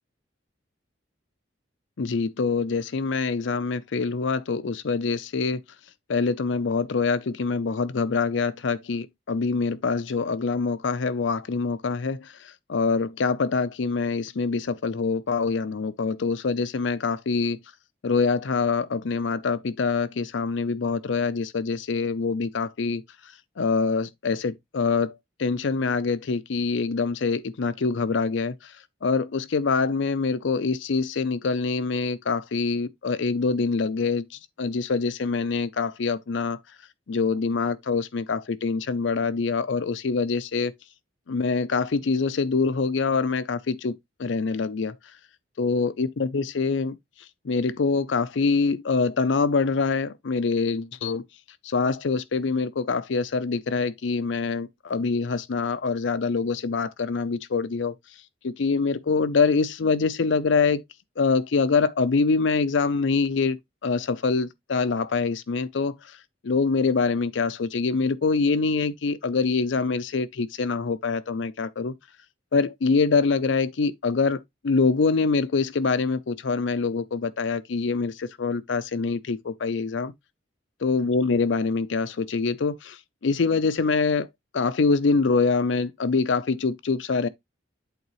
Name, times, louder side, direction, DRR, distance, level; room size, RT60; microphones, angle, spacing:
voice 1, 2.0-5.6 6.1-17.6 18.0-23.0 23.6-28.7 29.0-34.2 34.6-36.6 37.1-40.7 41.3-43.9 44.2-44.9 45.6-47.0 47.4-51.2 51.6-57.9 58.4-60.8 61.2-63.6 63.8-65.9 66.4-71.9 72.5-80.1 80.8-84.3 84.5-87.3, left 4 dB, 70° left, 0.5 m, -25 dB
8.2 x 3.9 x 3.0 m
head